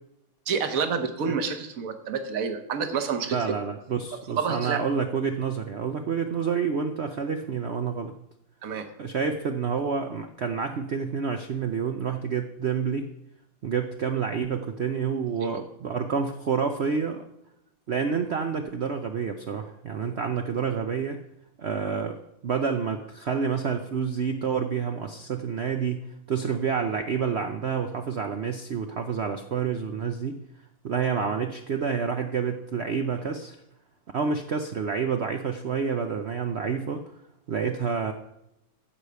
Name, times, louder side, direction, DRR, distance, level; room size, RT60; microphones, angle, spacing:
voice 1, 0.5-3.4 4.3-4.8 8.6-8.9 15.4-15.6, right 6 dB, 50° right, 7 dB, 1.4 m, -28 dB
voice 2, 3.3-8.1 9.0-13.1 13.6-17.2 17.9-21.2 21.6-30.4 30.8-33.6 34.1-37.0 37.5-38.1, right 6 dB, 75° right, 6 dB, 0.6 m, -28 dB
14.5 x 4.9 x 6.9 m, 0.83 s
omnidirectional pair, 2.1 m